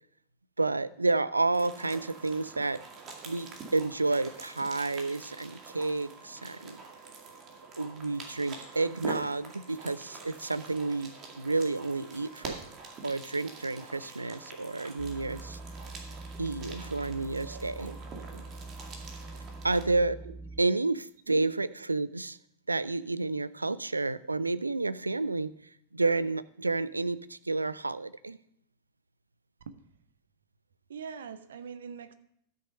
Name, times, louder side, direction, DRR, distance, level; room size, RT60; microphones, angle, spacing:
voice 1, 0.6-2.8 3.3-6.8 7.8-12.6 13.0-15.6 16.4-17.9 19.6-20.2 20.6-22.4 22.7-25.5 25.9-28.4, right 3 dB, 80° right, 16 dB, 0.4 m, -30 dB
sound 1, 1.5-19.8, right 4 dB, 30° right, 2.2 m, -46 dB
sound 2, 15.0-20.6, right 2 dB, 10° right, 0.5 m, -44 dB
voice 2, 17.4-18.4 20.2-20.3 21.3-21.5 29.6-29.8 30.9-32.1, right 7 dB, 65° right, 12 dB, 0.8 m, -43 dB
12.5 x 6.4 x 5.4 m, 0.69 s
figure-of-eight pair, 90°, 0 cm